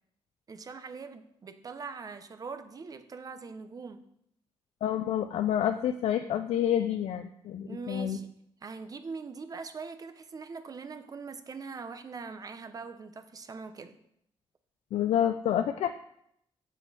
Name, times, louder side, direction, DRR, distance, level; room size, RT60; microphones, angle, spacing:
voice 1, 0.5-4.0 7.7-8.3 8.6-13.9, right 4 dB, 35° right, 9 dB, 0.7 m, -42 dB
voice 2, 4.8-8.2 14.9-16.0, left 10 dB, 85° left, 9 dB, 0.4 m, -28 dB
7.5 x 7.2 x 4.1 m, 0.73 s
cardioid pair, 125°, 10 cm